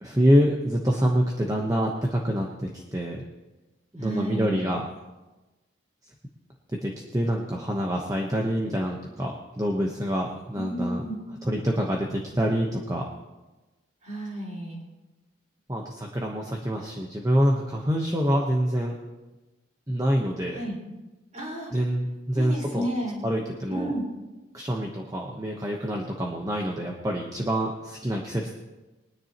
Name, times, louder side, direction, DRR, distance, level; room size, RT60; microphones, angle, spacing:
voice 1, 0.0-3.2 3.9-4.8 6.8-11.0 11.4-13.1 15.7-18.9 19.9-20.6 21.7-22.9 23.2-23.9 24.5-28.5, equal, 15° right, 0 dB, 1.0 m, -26 dB
voice 2, 4.0-4.7 10.5-11.2 14.0-14.8 20.5-20.8 21.3-21.7 22.3-23.3 23.7-24.0, right 1 dB, 35° right, -5 dB, 4.5 m, -32 dB
22.5 x 10.0 x 3.0 m, 1.1 s
head